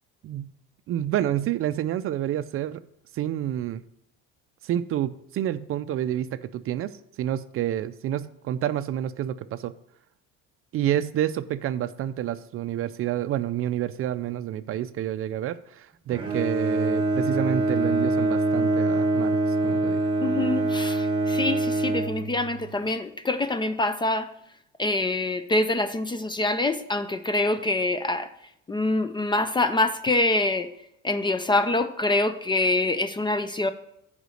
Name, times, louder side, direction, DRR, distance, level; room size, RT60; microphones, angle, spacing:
voice 1, 0.9-2.8 3.1-3.8 4.6-9.7 10.7-20.0, right 11 dB, 45° right, 13 dB, 0.4 m, -29 dB
Bowed string instrument, 16.1-22.8, right 2 dB, 20° right, 1.2 m, -25 dB
voice 2, 20.2-24.3 24.8-28.3 28.7-30.7 31.0-33.7, left 2 dB, 15° left, 11 dB, 0.4 m, -25 dB
8.1 x 5.1 x 6.3 m, 0.76 s
cardioid pair, 125°, 30 cm